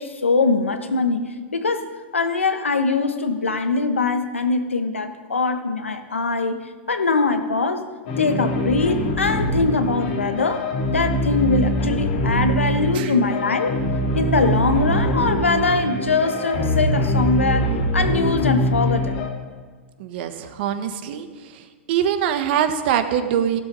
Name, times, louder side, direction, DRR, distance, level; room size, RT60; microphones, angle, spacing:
voice 1, 0.0-7.9 8.2-13.8 14.1-19.3, left 3 dB, 90° left, 8 dB, 1.2 m, -22 dB
sound 1, 8.1-19.3, equal, 60° left, 2.8 m, -23 dB
voice 2, 20.0-21.3 21.9-23.6, right 9 dB, 55° right, 8 dB, 1.5 m, -23 dB
15.5 x 12.0 x 5.5 m, 1.5 s
hypercardioid pair, 100°, 7 cm